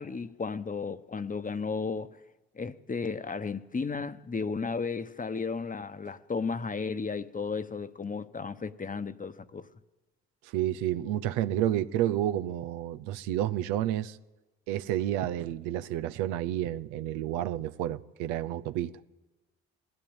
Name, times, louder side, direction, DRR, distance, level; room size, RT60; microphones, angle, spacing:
voice 1, 0.0-2.2 2.5-9.7, left 4 dB, 25° left, 1.1 m, -34 dB
voice 2, 10.5-14.2 14.7-18.9, right 12 dB, 90° right, 0.7 m, -30 dB
20.5 x 15.0 x 8.9 m
supercardioid pair, 60°, 30 cm